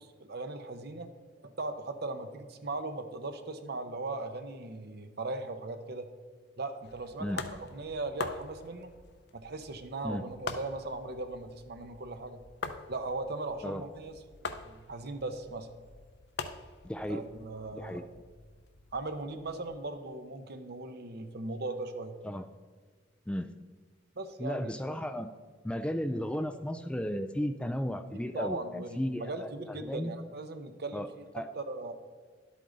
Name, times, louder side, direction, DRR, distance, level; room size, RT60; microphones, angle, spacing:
voice 1, 0.2-1.1 1.4-6.1 6.6-8.9 9.3-12.4 12.9-14.2 14.4-15.7 17.1-18.1 18.9-22.2 24.2-24.7 28.3-31.3 31.6-31.9, right 2 dB, 55° right, 9 dB, 0.8 m, -38 dB
sound 1, 6.8-19.9, left 4 dB, 60° left, 0.6 m, -45 dB
voice 2, 16.8-17.2 17.8-18.0 22.2-22.5 23.3-23.5 24.4-25.3 25.6-30.1 30.9-31.1 31.3-31.5, equal, 5° left, 9 dB, 0.3 m, -34 dB
11.5 x 8.4 x 3.9 m, 1.5 s
head